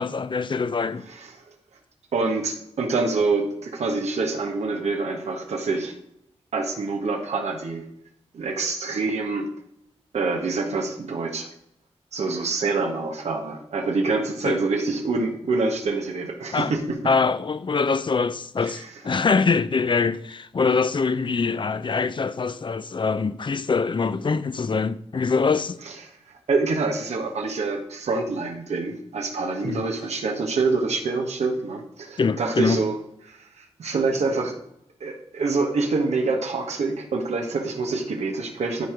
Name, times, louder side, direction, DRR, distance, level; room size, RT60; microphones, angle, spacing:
voice 1, 0.0-1.0 14.4-14.6 16.5-16.7 17.0-25.8 29.6-29.9 32.2-32.8, left 4 dB, 45° left, 0.6 m, -24 dB
voice 2, 1.1-1.5 2.1-6.0 6.5-7.9 8.3-9.5 10.1-11.5 12.1-17.0 18.6-18.9 26.1-26.2 26.5-33.0 33.3-34.6 35.0-38.9, right 3 dB, 85° right, 1.5 m, -26 dB
13.0 x 4.8 x 5.1 m
cardioid pair, 65°, 11 cm